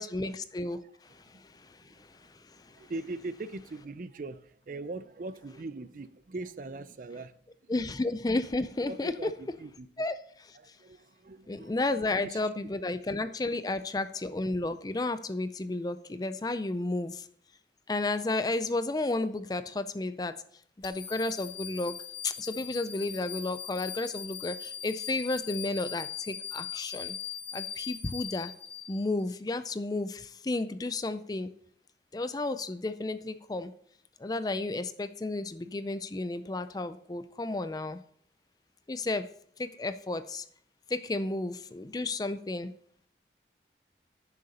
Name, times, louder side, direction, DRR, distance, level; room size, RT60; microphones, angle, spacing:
voice 1, 0.0-2.9 7.7-9.4 10.0-10.8 11.5-17.3 17.9-20.4 20.8-22.0 22.2-27.2 27.5-28.5 28.9-31.5 32.1-33.7 34.2-38.0 38.9-39.3 39.6-40.4 40.9-42.7, left 2 dB, 20° left, 0.4 m, -32 dB
voice 2, 2.8-7.3 7.7-7.8 8.9-9.9 10.6-11.8 12.1-12.4, right 2 dB, 45° right, 0.4 m, -41 dB
sound 1, 20.8-29.3, left 8 dB, 70° left, 1.5 m, -40 dB
10.5 x 6.7 x 4.2 m
head